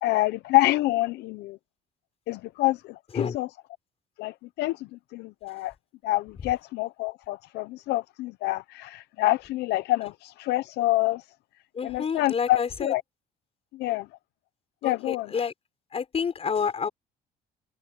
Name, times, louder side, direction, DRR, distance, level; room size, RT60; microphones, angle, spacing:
voice 1, 0.0-1.6 2.3-3.5 4.2-5.7 6.0-11.2 11.8-13.0 13.7-14.1 14.8-15.3, left 17 dB, 85° left, 0.7 m, -27 dB
voice 2, 11.7-12.9 14.8-15.5 15.9-16.9, left 6 dB, 35° left, 4.2 m, -29 dB
cardioid pair, 110°, 17 cm